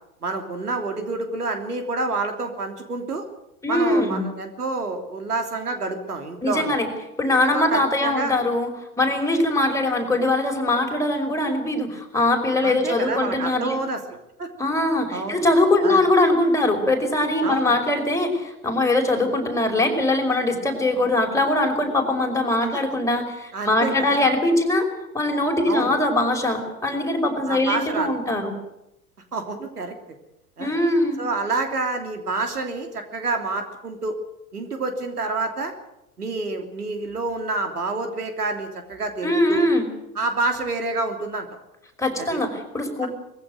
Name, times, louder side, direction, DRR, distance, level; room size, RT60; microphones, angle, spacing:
voice 1, 0.2-3.2 3.7-6.7 7.5-8.4 12.6-14.0 14.4-14.5 15.1-15.4 15.8-16.0 17.4-17.7 22.7-22.8 23.5-24.3 25.7-25.9 27.5-28.1 29.3-29.9 30.6-30.7 31.2-34.2 34.5-35.7 36.2-39.6 40.1-41.5 42.2-42.4, right 3 dB, 80° right, 5 dB, 3.2 m, -28 dB
voice 2, 3.6-4.2 6.4-6.9 7.2-8.7 9.0-13.8 14.6-24.9 25.1-28.5 30.6-31.2 39.2-39.9 42.0-43.1, left 2 dB, 5° left, 2 dB, 5.3 m, -22 dB
21.0 x 15.5 x 9.3 m, 0.87 s
figure-of-eight pair, 85°, 45 cm